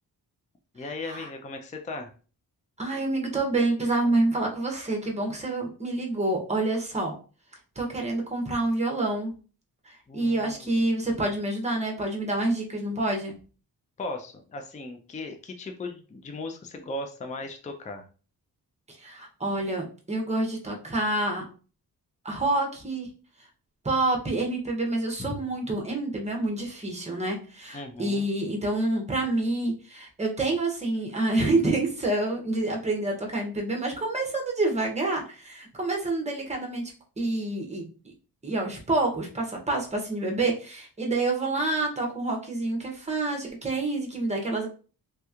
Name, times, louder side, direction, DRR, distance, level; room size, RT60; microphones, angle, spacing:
voice 1, 0.7-2.1 10.1-10.8 14.0-18.0 25.2-25.4 27.7-28.3, left 2 dB, 20° left, 4 dB, 0.4 m, -37 dB
voice 2, 2.8-7.1 7.8-9.3 9.8-13.4 18.9-21.4 22.2-23.1 23.8-38.1 38.4-44.7, right 2 dB, 15° right, 1 dB, 0.8 m, -28 dB
3.2 x 2.9 x 2.4 m, 0.38 s
wide cardioid pair, 130°, 39 cm